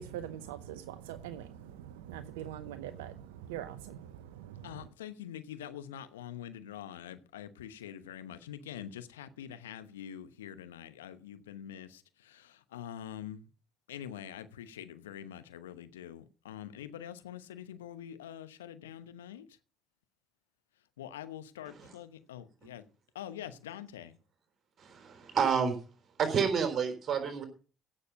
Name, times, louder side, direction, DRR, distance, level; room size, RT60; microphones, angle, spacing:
voice 1, 0.0-4.9, right 10 dB, 75° right, 0.7 m, -43 dB
voice 2, 4.6-13.4 13.9-19.5 21.0-22.8 23.1-24.1, left 10 dB, 80° left, 0.9 m, -45 dB
voice 3, 24.8-25.8 26.2-27.4, right 6 dB, 45° right, 3.8 m, -30 dB
16.0 x 6.9 x 5.1 m
figure-of-eight pair, 50°, 0 cm